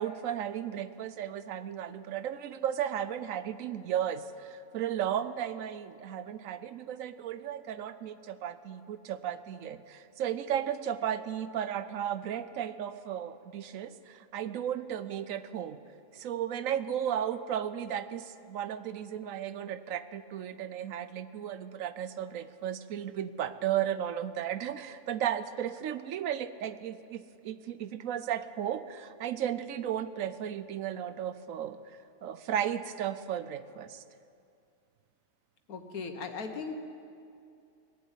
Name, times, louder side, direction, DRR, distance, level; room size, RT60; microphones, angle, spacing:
voice 1, 0.0-15.8 16.1-34.0, right 10 dB, 70° right, 13 dB, 1.0 m, -34 dB
voice 2, 35.7-36.7, left 5 dB, 85° left, 6 dB, 1.6 m, -38 dB
20.0 x 7.4 x 9.0 m, 2.5 s
omnidirectional pair, 1.5 m